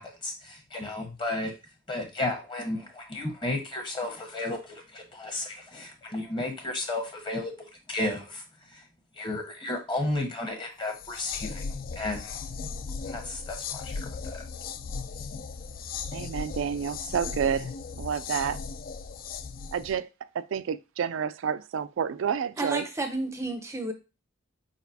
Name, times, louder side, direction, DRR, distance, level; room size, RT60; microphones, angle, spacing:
voice 1, 0.0-1.5 1.9-7.5 7.9-8.8 9.1-11.6 11.9-12.4 13.0-14.4, left 2 dB, 25° left, 1.2 m, -33 dB
sound 1, 10.9-19.9, left 5 dB, 50° left, 0.4 m, -37 dB
voice 2, 16.1-18.6 19.7-22.9, right 7 dB, 80° right, 0.3 m, -30 dB
voice 3, 22.6-23.9, right 2 dB, 15° right, 0.6 m, -31 dB
4.8 x 4.1 x 2.7 m
head